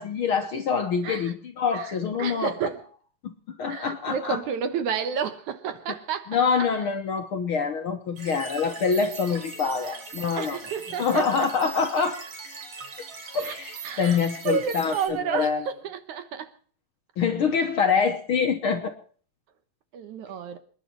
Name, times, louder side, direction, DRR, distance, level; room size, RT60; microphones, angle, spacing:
voice 1, 0.0-2.5 3.2-3.3 3.6-4.4 6.3-10.6 11.0-12.2 13.3-15.6 17.2-18.9, left 5 dB, 55° left, 1.6 m, -25 dB
voice 2, 1.0-1.3 1.8-1.9 2.2-2.8 3.7-6.4 9.8-10.0 10.3-11.5 13.4-13.5 13.8-14.2 14.5-16.5 19.9-20.6, right 7 dB, 70° right, 2.5 m, -31 dB
sound 1, 8.2-15.1, right 4 dB, 50° right, 3.4 m, -40 dB
27.0 x 11.0 x 4.5 m
omnidirectional pair, 3.7 m